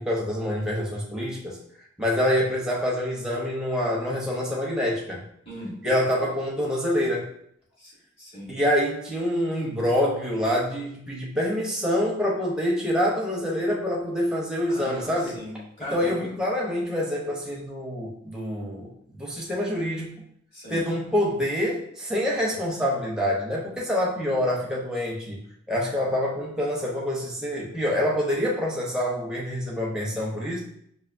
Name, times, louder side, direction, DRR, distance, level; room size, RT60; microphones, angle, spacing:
voice 1, 0.0-1.6 2.0-5.2 5.8-7.3 8.5-15.4 15.9-20.1 20.7-25.4 25.7-30.6, left 1 dB, 5° right, -4 dB, 0.7 m, -26 dB
voice 2, 8.2-8.5 14.7-16.3 20.5-20.8, equal, 30° left, -6 dB, 1.4 m, -38 dB
5.4 x 2.6 x 2.6 m, 0.70 s
head